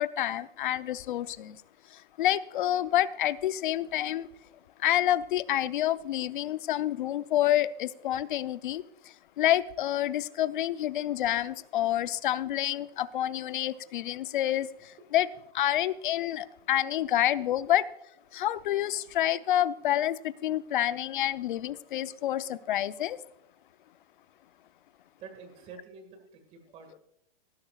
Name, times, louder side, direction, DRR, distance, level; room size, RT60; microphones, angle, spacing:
voice 1, 0.0-1.6 2.2-4.3 4.8-8.8 9.4-14.7 15.1-15.3 15.5-17.8 18.3-23.2, left 12 dB, 55° left, 0.7 m, -28 dB
voice 2, 25.2-27.0, right 5 dB, 20° right, 1.8 m, -48 dB
18.5 x 10.5 x 2.4 m
hypercardioid pair, 165°, 29 cm